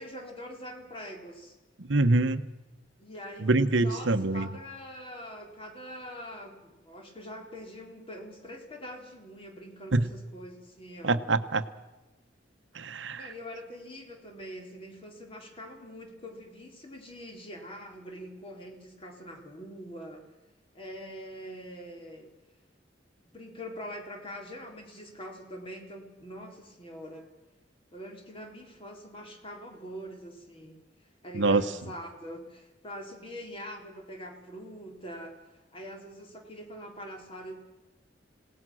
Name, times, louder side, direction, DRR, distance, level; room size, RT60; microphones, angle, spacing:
voice 1, 0.0-1.6 3.0-11.2 13.2-20.2 20.7-22.3 23.3-27.3 27.9-30.8 31.2-37.6, equal, 30° left, 2 dB, 4.0 m, -44 dB
voice 2, 1.9-2.4 3.4-4.5 9.9-10.0 11.0-11.6 12.7-13.3 31.3-31.6, right 2 dB, 75° right, 11 dB, 1.1 m, -24 dB
27.5 x 18.5 x 6.3 m, 1.1 s
head